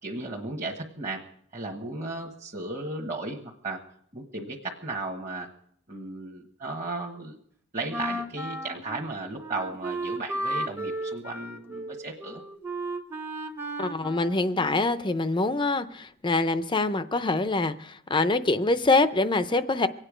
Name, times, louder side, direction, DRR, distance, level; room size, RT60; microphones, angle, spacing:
voice 1, 0.0-1.2 1.5-3.8 4.1-5.5 5.9-7.4 7.7-12.4, right 2 dB, 35° right, -1 dB, 1.3 m, -35 dB
Wind instrument woodwind instrument, 7.9-15.1, right 1 dB, 10° right, 0.8 m, -34 dB
voice 2, 13.8-19.9, left 2 dB, 20° left, 12 dB, 0.5 m, -25 dB
24.0 x 9.0 x 5.0 m, 0.66 s
head